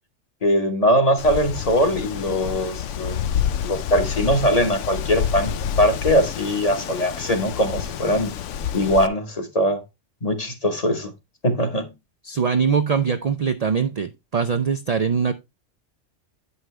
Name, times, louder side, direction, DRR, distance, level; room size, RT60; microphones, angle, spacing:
voice 1, 0.4-8.3 8.7-9.8 10.2-11.1 11.4-11.9, equal, 30° left, 1.1 m, -21 dB
Wind, 1.2-9.1, left 9 dB, 75° left, 0.9 m, -28 dB
voice 2, 12.2-15.3, right 6 dB, 60° right, 0.4 m, -22 dB
9.0 x 5.6 x 3.2 m
omnidirectional pair, 1.3 m